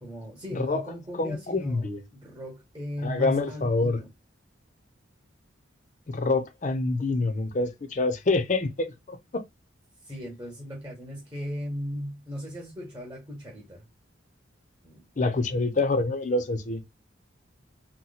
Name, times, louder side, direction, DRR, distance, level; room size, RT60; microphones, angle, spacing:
voice 1, 0.0-4.1 10.0-13.9 14.8-15.0 15.4-15.6, equal, 20° right, 1.0 m, -37 dB
voice 2, 0.5-0.8 1.1-2.0 3.0-4.0 6.1-9.4 15.2-16.8, left 3 dB, 40° left, 0.5 m, -26 dB
2.8 x 2.1 x 4.0 m
head